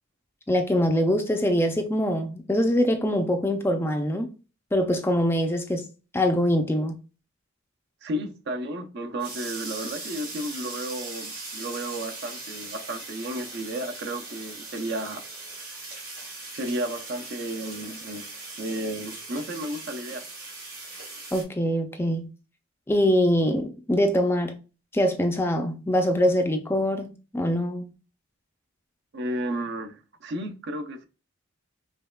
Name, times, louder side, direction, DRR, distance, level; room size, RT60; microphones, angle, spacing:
voice 1, 0.5-4.3 4.7-5.9 6.1-7.0 21.3-22.3 22.9-24.6 24.9-27.8, equal, 10° left, 0.4 m, -23 dB
voice 2, 8.0-15.2 16.6-18.2 18.6-20.2 29.1-31.0, right 1 dB, 55° right, 0.5 m, -33 dB
sound 1, 9.2-21.4, right 3 dB, 85° right, 1.6 m, -39 dB
5.3 x 2.2 x 2.2 m
head